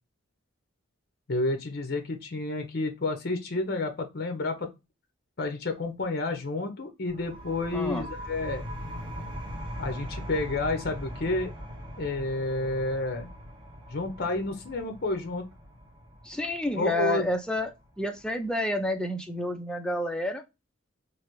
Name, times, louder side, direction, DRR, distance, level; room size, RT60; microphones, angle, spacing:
voice 1, 1.3-4.7 5.4-8.6 9.8-11.5 12.0-13.3 13.9-15.5 16.8-17.3, left 2 dB, 50° left, 6 dB, 0.6 m, -30 dB
sound 1, 7.1-18.5, equal, 20° right, 0.7 m, -41 dB
voice 2, 7.7-8.1 16.2-17.7 18.0-20.4, left 1 dB, 5° left, 4 dB, 0.4 m, -29 dB
3.2 x 2.4 x 2.9 m, 0.25 s
head